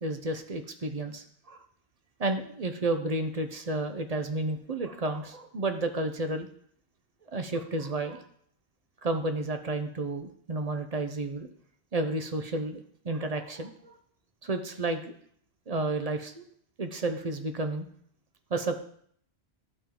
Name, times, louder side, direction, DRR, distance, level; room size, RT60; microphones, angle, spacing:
voice 1, 0.0-1.6 2.2-6.5 7.3-8.2 9.0-11.5 11.9-14.0 14.4-15.0 15.7-16.5 16.8-17.9 18.5-18.8, right 2 dB, 40° right, 7 dB, 0.7 m, -31 dB
12.0 x 4.4 x 3.8 m, 0.63 s
omnidirectional pair, 1.1 m